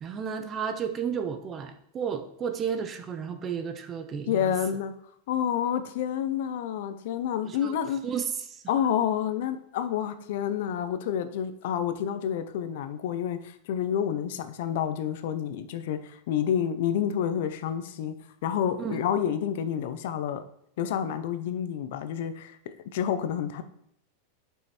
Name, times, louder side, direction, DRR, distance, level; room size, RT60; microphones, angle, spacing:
voice 1, 0.0-4.5 7.4-7.7 8.0-8.6 18.8-19.0, right 7 dB, 20° right, 7 dB, 0.7 m, -32 dB
voice 2, 4.3-4.9 5.3-8.0 8.7-18.1 18.4-20.4 20.8-23.6, left 9 dB, 60° left, 11 dB, 0.7 m, -29 dB
7.8 x 5.5 x 4.3 m, 0.71 s
supercardioid pair, 165°, 0 cm